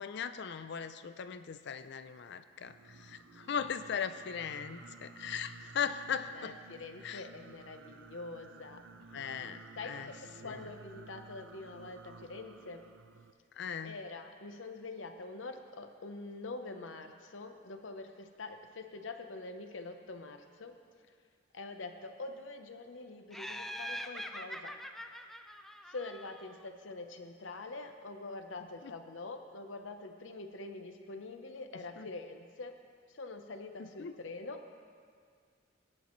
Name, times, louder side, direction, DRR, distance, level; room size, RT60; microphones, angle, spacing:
voice 1, 0.0-6.5 7.0-7.2 9.1-10.1 10.4-10.6 13.6-14.0 32.0-32.1 33.8-34.1, left 7 dB, 60° left, 11 dB, 0.4 m, -38 dB
Singing, 2.6-13.3, right 4 dB, 80° right, 0.5 m, -54 dB
voice 2, 6.3-8.8 9.7-12.9 13.8-20.8 21.1-21.2 21.5-24.7 25.1-25.2 25.9-32.7 33.1-34.7, left 3 dB, 80° left, 6 dB, 0.8 m, -45 dB
Laughter, 23.3-26.6, equal, ahead, 0.4 m, -43 dB
18.5 x 9.9 x 3.1 m, 2.1 s
head